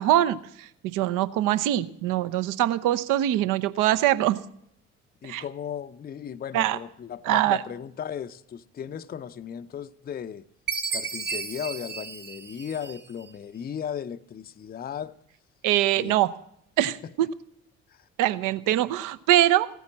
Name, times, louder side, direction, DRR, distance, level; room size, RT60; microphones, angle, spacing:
voice 1, 0.0-4.4 5.2-5.4 6.5-6.8 7.2-7.6 15.6-16.3 16.8-17.3 18.2-19.7, right 13 dB, 55° right, 0.8 m, -23 dB
voice 2, 5.2-10.5 10.9-15.2 16.0-16.1 17.0-17.1 17.9-18.1, left 8 dB, 25° left, 0.6 m, -36 dB
Chime, 10.7-13.2, right 5 dB, 30° right, 1.5 m, -33 dB
15.5 x 9.3 x 7.3 m
figure-of-eight pair, 55°, 37 cm